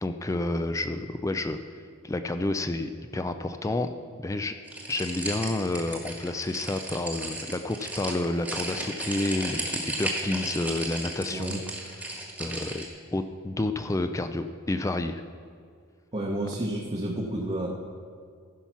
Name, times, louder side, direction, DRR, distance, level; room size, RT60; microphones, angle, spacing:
voice 1, 0.0-1.6 2.0-3.9 4.2-4.5 4.9-11.6 11.9-12.9 13.1-15.2, left 2 dB, 15° left, 8 dB, 0.3 m, -30 dB
sound 1, 4.7-12.9, right 1 dB, 5° right, 1.3 m, -35 dB
voice 2, 16.1-17.7, right 1 dB, 30° right, -3 dB, 0.9 m, -30 dB
14.5 x 5.7 x 5.8 m, 2.2 s
head